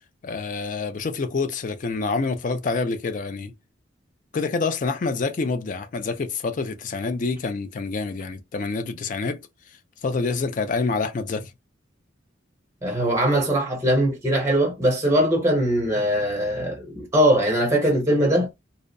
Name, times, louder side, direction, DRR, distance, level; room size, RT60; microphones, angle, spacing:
voice 1, 0.2-3.5 4.3-9.4 10.0-11.5, left 4 dB, 40° left, 0.3 m, -27 dB
voice 2, 12.8-18.5, right 1 dB, 15° right, 0.5 m, -21 dB
2.6 x 2.0 x 2.5 m
head